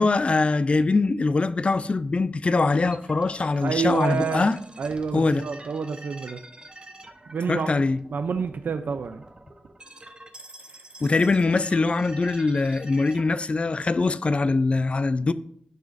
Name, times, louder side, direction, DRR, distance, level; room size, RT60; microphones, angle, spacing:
voice 1, 0.0-4.6 5.1-5.5 7.5-8.0 11.0-15.3, left 3 dB, 40° left, 0.3 m, -22 dB
sound 1, 2.7-13.5, right 2 dB, 30° right, 0.9 m, -46 dB
voice 2, 3.6-4.5 4.8-6.4 7.3-7.7 8.1-9.2, right 5 dB, 85° right, 0.4 m, -28 dB
11.5 x 6.3 x 2.5 m
wide cardioid pair, 120°, 3 cm